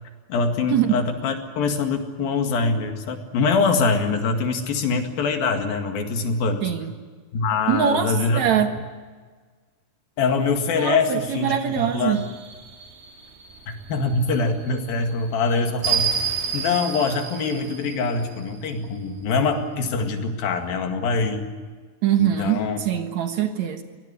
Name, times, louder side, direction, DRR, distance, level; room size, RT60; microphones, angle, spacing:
voice 1, 0.3-6.7 7.3-8.4 10.2-12.2 13.7-16.2 16.5-21.5 22.2-22.8, left 4 dB, 80° left, 5 dB, 3.9 m, -24 dB
voice 2, 6.6-6.9 7.7-8.7 10.8-12.2 22.0-23.8, right 9 dB, 60° right, 6 dB, 2.4 m, -23 dB
sound 1, 11.2-18.7, right 7 dB, 75° right, 4.2 m, -31 dB
23.5 x 18.5 x 9.6 m, 1.5 s
omnidirectional pair, 4.2 m